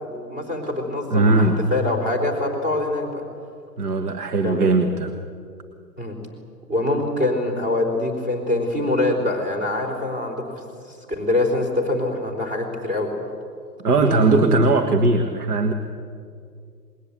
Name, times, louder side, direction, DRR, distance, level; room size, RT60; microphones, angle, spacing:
voice 1, 0.0-3.2 4.4-4.7 6.0-6.2 6.7-10.5 10.8-13.1 14.1-14.6, left 2 dB, 20° right, 1 dB, 4.1 m, -24 dB
voice 2, 1.1-1.6 3.8-5.1 13.8-15.7, right 3 dB, 65° right, 6 dB, 1.9 m, -19 dB
28.0 x 21.0 x 8.5 m, 2.3 s
figure-of-eight pair, 115°, 49 cm